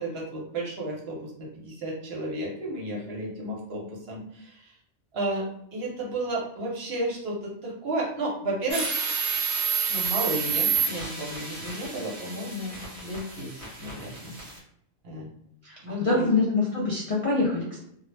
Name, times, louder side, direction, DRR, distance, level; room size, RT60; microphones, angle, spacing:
voice 1, 0.0-4.7 5.1-5.4 5.7-8.9 9.9-14.3 15.0-15.3 15.8-16.3, right 1 dB, 60° right, -3 dB, 0.9 m, -32 dB
sound 1, 8.7-14.6, right 6 dB, 30° right, 0.9 m, -29 dB
voice 2, 16.0-17.8, left 3 dB, 55° left, -4 dB, 0.3 m, -24 dB
2.3 x 2.0 x 3.2 m, 0.73 s
omnidirectional pair, 1.2 m